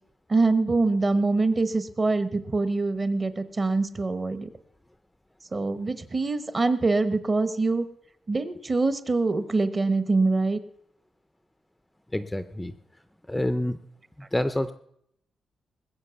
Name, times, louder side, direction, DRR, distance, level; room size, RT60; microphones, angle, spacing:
voice 1, 0.3-4.5 5.5-7.8 8.3-10.6, right 3 dB, 25° right, 12 dB, 0.9 m, -24 dB
voice 2, 12.1-12.7 13.3-13.8 14.2-14.7, left 1 dB, 5° left, 11 dB, 0.5 m, -27 dB
20.0 x 7.9 x 6.9 m, 0.73 s
wide cardioid pair, 165°, 0 cm